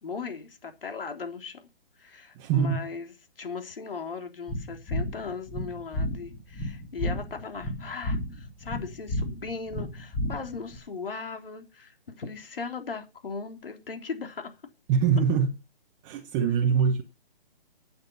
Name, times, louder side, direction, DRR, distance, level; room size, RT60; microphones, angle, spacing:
voice 1, 0.0-1.6 2.0-14.6, left 5 dB, 70° left, 3.6 m, -38 dB
voice 2, 2.3-2.9 14.9-15.6 16.0-17.0, right 6 dB, 20° right, 1.1 m, -23 dB
sound 1, 4.5-10.8, left 1 dB, 10° left, 3.1 m, -32 dB
12.5 x 8.8 x 5.5 m
hypercardioid pair, 150°, 29 cm